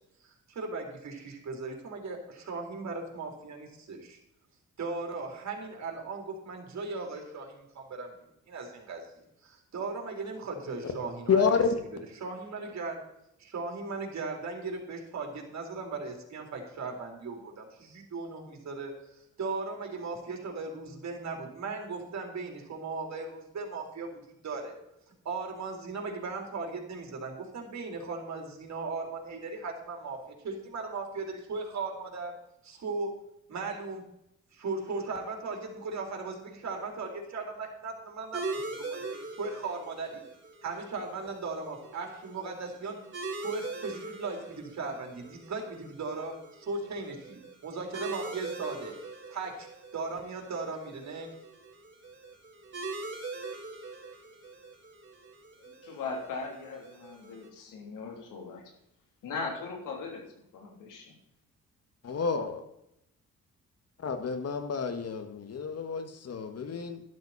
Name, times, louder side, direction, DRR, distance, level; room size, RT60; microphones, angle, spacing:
voice 1, 0.2-4.2 4.8-8.1 8.5-9.1 9.4-11.4 12.2-13.0 13.4-24.8 25.1-32.3 32.6-33.2 33.5-34.1 34.5-38.4 38.9-39.0 39.4-40.2 40.6-43.0 43.3-49.0 49.3-49.7 49.9-51.3, right 3 dB, 60° right, 1 dB, 4.2 m, -37 dB
voice 2, 11.3-11.8 62.0-62.6 64.0-67.0, left 5 dB, 50° left, 7 dB, 2.1 m, -29 dB
sound 1, 38.3-57.5, right 3 dB, 40° right, 3.7 m, -42 dB
voice 3, 55.6-58.7 59.2-61.2, left 4 dB, 85° left, 1 dB, 3.5 m, -39 dB
12.0 x 12.0 x 4.4 m, 0.80 s
cardioid pair, 80°, 31 cm